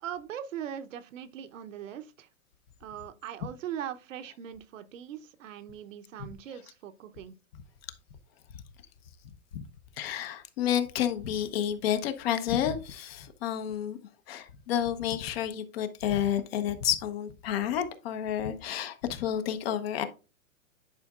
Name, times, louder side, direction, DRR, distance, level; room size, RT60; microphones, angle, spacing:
voice 1, 0.0-2.3 2.8-7.3, right 9 dB, 65° right, 0.9 m, -40 dB
voice 2, 10.0-14.0 14.3-20.1, left 10 dB, 45° left, 1.1 m, -30 dB
10.5 x 5.0 x 2.4 m
hypercardioid pair, 145°, 41 cm